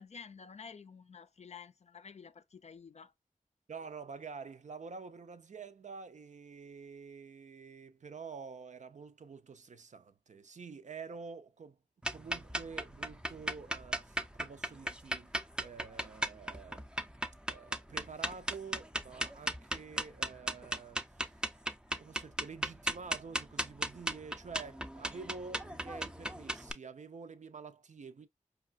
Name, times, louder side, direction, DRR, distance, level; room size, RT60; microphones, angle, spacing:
voice 1, 0.0-3.1, left 6 dB, 55° left, 0.4 m, -51 dB
voice 2, 3.7-11.8 12.1-16.8 17.5-21.2 21.9-28.3, right 5 dB, 65° right, 0.5 m, -48 dB
sound 1, 12.0-26.7, right 1 dB, 5° right, 0.4 m, -37 dB
4.7 x 2.3 x 2.3 m
wide cardioid pair, 55°, 13 cm